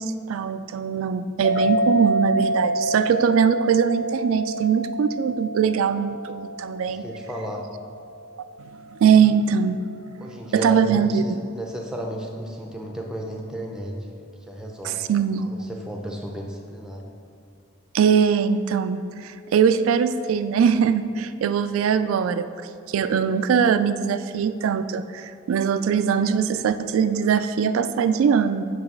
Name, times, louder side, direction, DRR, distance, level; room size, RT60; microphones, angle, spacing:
voice 1, 0.0-7.0 9.0-9.8 10.5-11.2 14.8-15.5 17.9-22.5 22.9-28.6, right 7 dB, 80° right, 13 dB, 0.3 m, -21 dB
sound 1, 1.4-8.5, equal, 65° left, 1.7 m, -28 dB
voice 2, 6.9-7.7 10.2-15.0 15.5-17.1, equal, 5° right, 1 dB, 0.5 m, -33 dB
9.0 x 3.1 x 5.2 m, 2.4 s
head